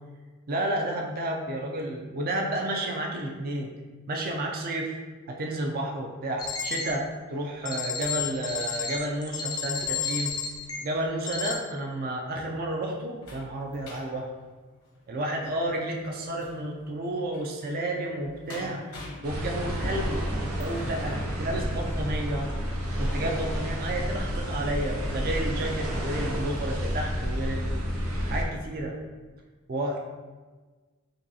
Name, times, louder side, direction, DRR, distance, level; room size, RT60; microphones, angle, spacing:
voice 1, 0.5-3.7 4.1-4.9 5.3-10.3 10.8-14.3 15.1-22.5 23.0-27.8 28.3-29.0 29.7-30.0, right 1 dB, 45° right, 1 dB, 0.4 m, -31 dB
sound 1, 6.4-6.9 7.6-10.8 11.3-11.5, left 7 dB, 20° left, 0.4 m, -31 dB
sound 2, 12.3-22.1 22.7-22.8 23.1-23.2, left 2 dB, 75° left, 0.9 m, -47 dB
sound 3, 19.2-28.4, equal, 80° right, 0.7 m, -30 dB
5.1 x 2.3 x 2.7 m, 1.3 s
head